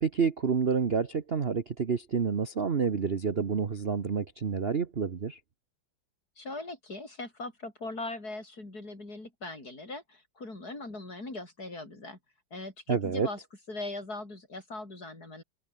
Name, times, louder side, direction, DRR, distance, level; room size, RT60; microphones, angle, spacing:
voice 1, 0.0-5.4 12.9-13.3, right 6 dB, 40° right, 1.1 m, -28 dB
voice 2, 6.4-12.2 12.5-13.4 13.7-15.4, left 2 dB, 50° left, 6.4 m, -40 dB
omnidirectional pair, 2.1 m